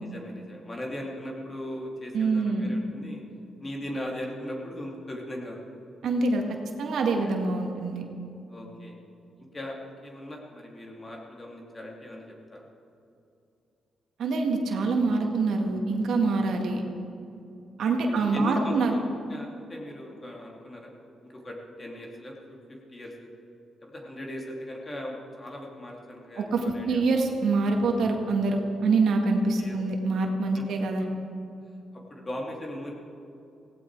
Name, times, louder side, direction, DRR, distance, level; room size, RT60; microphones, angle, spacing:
voice 1, 0.0-3.2 3.6-5.6 7.1-7.4 8.5-8.9 9.5-12.7 14.7-14.9 15.1-15.3 16.4-16.6 17.9-19.0 19.3-20.9 21.2-23.3 23.8-27.0 29.6-29.8 30.5-30.6 31.9-32.9, left 1 dB, 25° left, -1 dB, 2.6 m, -39 dB
voice 2, 2.1-2.7 6.0-6.4 6.8-8.1 14.2-16.8 17.8-19.0 26.4-31.0, right 3 dB, 75° right, 2 dB, 1.9 m, -25 dB
17.0 x 17.0 x 4.7 m, 2.6 s
cardioid pair, 105°, 0 cm